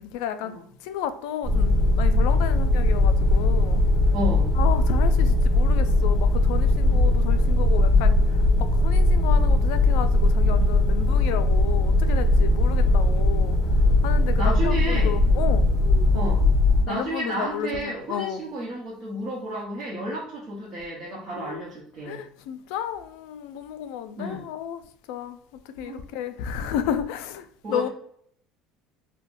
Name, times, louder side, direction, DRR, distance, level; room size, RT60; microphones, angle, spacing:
voice 1, 0.0-0.5 0.8-3.8 4.6-8.2 8.6-13.6 14.0-15.7 16.1-16.3 16.9-18.4 21.4-21.6 22.0-24.8 25.1-25.4 25.8-27.9, left 9 dB, 75° left, 0.3 m, -32 dB
sound 1, 1.4-16.8, left 2 dB, 25° left, 1.2 m, -19 dB
voice 2, 4.1-4.5 14.4-15.1 16.1-16.5 16.8-22.2 24.2-24.4 25.8-26.1 27.6-27.9, equal, 35° right, 0.8 m, -32 dB
3.6 x 2.1 x 2.5 m
cardioid pair, 165°, 0 cm